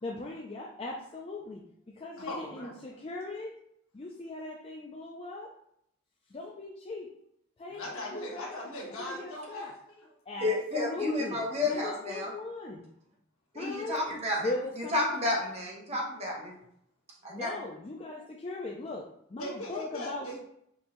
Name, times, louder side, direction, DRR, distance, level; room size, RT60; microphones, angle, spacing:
voice 1, 0.0-3.6 3.9-5.5 6.3-7.1 7.6-8.5 9.0-9.7 10.3-12.8 13.5-14.0 14.4-15.0 17.3-20.3, left 2 dB, 25° left, -1 dB, 0.4 m, -39 dB
voice 2, 2.2-2.7 7.7-10.1 19.4-20.4, left 1 dB, 90° left, -3 dB, 1.4 m, -39 dB
voice 3, 10.4-12.3 13.5-14.5 14.8-16.5 17.2-17.5, left 2 dB, 30° right, -2 dB, 1.0 m, -31 dB
5.3 x 2.7 x 3.0 m, 0.73 s
head